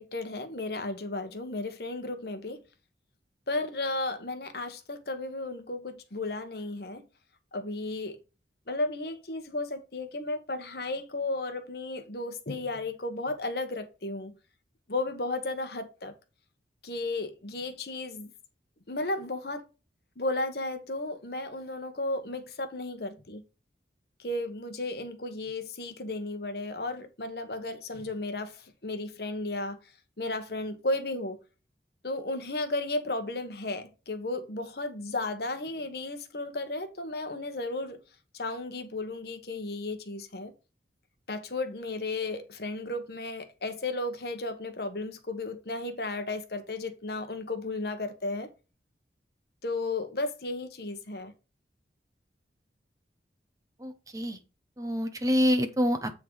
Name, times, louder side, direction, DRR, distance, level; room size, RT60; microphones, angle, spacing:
voice 1, 0.0-2.6 3.5-7.1 7.5-8.2 8.7-14.3 14.9-16.1 16.8-18.3 18.9-19.6 20.2-23.4 24.2-29.8 30.2-31.4 32.0-38.0 38.3-40.5 41.3-48.5 49.6-51.3, left 2 dB, 60° left, 1.2 m, -34 dB
voice 2, 53.8-54.4 54.8-56.1, equal, 20° right, 0.8 m, -26 dB
8.6 x 3.8 x 4.6 m
head